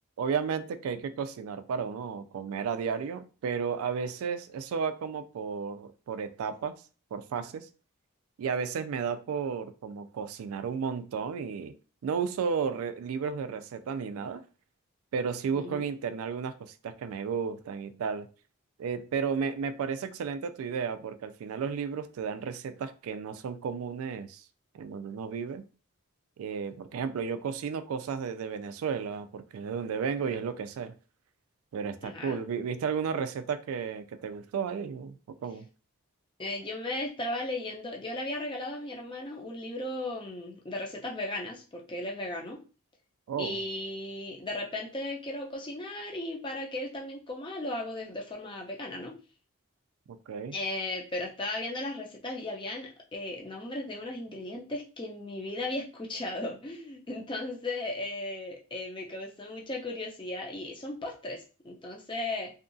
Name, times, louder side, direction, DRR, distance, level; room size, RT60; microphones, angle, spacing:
voice 1, 0.2-6.8 7.1-7.7 8.4-11.8 12.0-14.5 15.1-18.3 18.8-24.5 24.7-25.6 26.4-31.0 31.7-35.7 43.3-43.6 50.1-50.6, right 6 dB, 75° right, 0.3 m, -33 dB
voice 2, 15.5-15.9 32.0-32.4 36.4-42.6 43.4-49.2 50.5-62.5, left 2 dB, 20° left, 0.5 m, -36 dB
2.7 x 2.3 x 2.6 m
head